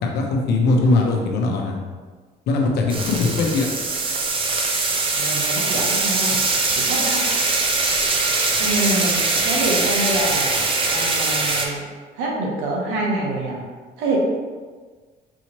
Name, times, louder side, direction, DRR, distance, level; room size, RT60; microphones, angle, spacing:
voice 1, 0.0-1.8 2.5-3.7, left 3 dB, 75° left, 1 dB, 0.8 m, -20 dB
sound 1, 2.9-11.7, right 3 dB, 30° right, 0.6 m, -22 dB
voice 2, 5.1-6.4 6.8-7.2 8.6-10.5 10.9-11.8 12.2-13.6 14.0-14.2, right 2 dB, 90° right, -2 dB, 1.1 m, -25 dB
4.8 x 2.9 x 3.0 m, 1.4 s
cardioid pair, 110°, 17 cm